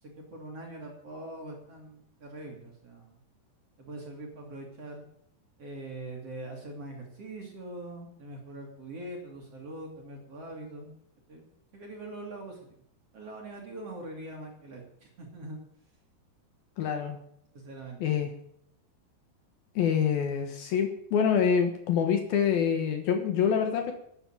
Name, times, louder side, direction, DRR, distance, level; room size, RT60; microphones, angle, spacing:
voice 1, 0.0-3.2 3.8-5.0 5.6-10.9 11.3-12.6 13.1-15.6 17.5-18.2, right 2 dB, 40° right, 0 dB, 3.2 m, -43 dB
voice 2, 16.8-17.2 18.0-18.3 19.8-23.9, left 7 dB, 65° left, 5 dB, 2.9 m, -26 dB
12.0 x 9.8 x 8.9 m, 0.71 s
omnidirectional pair, 5.2 m